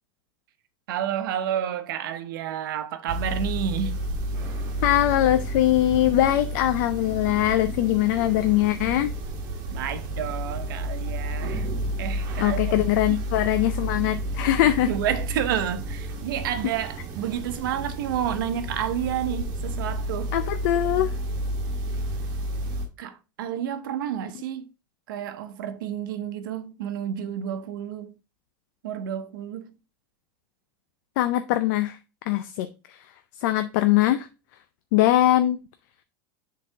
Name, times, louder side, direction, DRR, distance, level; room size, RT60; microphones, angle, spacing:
voice 1, 0.9-4.0 9.7-11.7 12.0-12.7 13.1-13.2 14.9-20.3 23.0-24.6 25.1-28.1 28.8-29.7, right 9 dB, 90° right, 0.9 m, -30 dB
sound 1, 3.1-22.9, right 1 dB, 40° right, 1.3 m, -31 dB
Bowed string instrument, 4.4-9.1, left 8 dB, 45° left, 1.0 m, -48 dB
voice 2, 4.8-9.1 12.4-14.9 20.3-21.1 31.2-32.0 32.3-33.0 33.4-34.3 34.9-35.6, left 14 dB, 65° left, 0.5 m, -22 dB
7.3 x 4.0 x 3.5 m
supercardioid pair, 155°, 11 cm